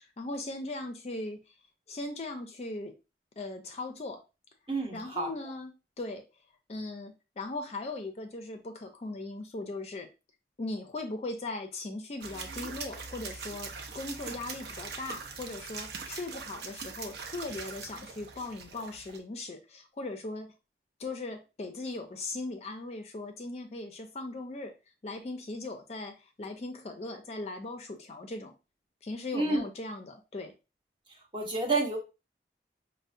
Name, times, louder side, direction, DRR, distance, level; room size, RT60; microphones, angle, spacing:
voice 1, 0.0-1.5 1.9-2.9 3.4-4.2 4.9-5.7 6.0-6.2 6.7-10.1 10.6-20.5 21.0-24.7 25.0-28.5 29.0-30.5, left 2 dB, 35° left, 5 dB, 0.4 m, -39 dB
voice 2, 4.7-5.3 29.3-29.7 31.3-32.0, right 2 dB, 30° right, 1 dB, 0.7 m, -29 dB
sound 1, 12.2-19.2, right 5 dB, 65° right, 0.6 m, -42 dB
5.3 x 2.1 x 2.5 m, 0.29 s
head